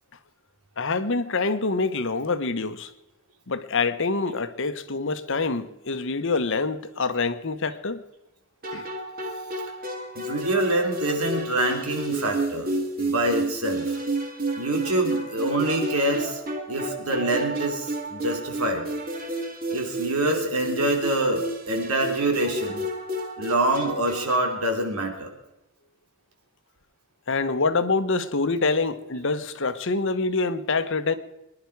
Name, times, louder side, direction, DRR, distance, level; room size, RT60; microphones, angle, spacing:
voice 1, 0.8-2.9 3.5-8.0 8.7-8.9 27.3-31.1, left 3 dB, 60° left, 1.0 m, -26 dB
sound 1, 8.6-24.6, right 1 dB, 40° right, 2.4 m, -31 dB
voice 2, 10.1-12.7 13.0-14.0 14.6-16.4 16.7-18.9 19.7-22.9 23.4-25.3, right 1 dB, 85° right, 3.2 m, -25 dB
23.5 x 11.0 x 4.7 m
head